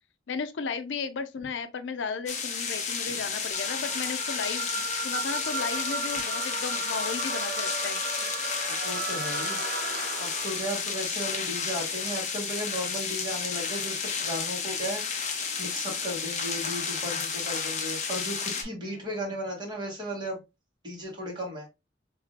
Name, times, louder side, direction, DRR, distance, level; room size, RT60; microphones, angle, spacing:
voice 1, 0.3-4.7 5.0-8.0 18.8-19.0, left 5 dB, 85° left, 0.5 m, -34 dB
sound 1, 2.3-18.6, left 5 dB, 40° left, 0.7 m, -32 dB
sound 2, 3.5-10.8, right 4 dB, 55° right, 0.7 m, -35 dB
voice 2, 8.8-9.6 10.2-20.4 20.8-21.7, equal, 25° right, 1.8 m, -35 dB
3.2 x 2.7 x 3.1 m
head